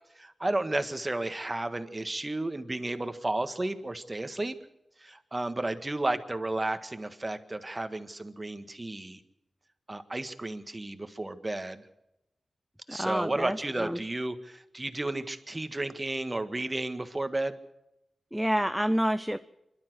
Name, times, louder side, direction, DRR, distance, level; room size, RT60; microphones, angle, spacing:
voice 1, 0.2-4.6 5.0-9.2 9.9-11.8 12.9-17.6, right 2 dB, 25° right, 10 dB, 1.6 m, -33 dB
voice 2, 12.9-14.0 18.3-19.4, equal, ahead, 11 dB, 0.6 m, -28 dB
26.5 x 12.5 x 7.9 m, 0.89 s
wide cardioid pair, 80°, 0 cm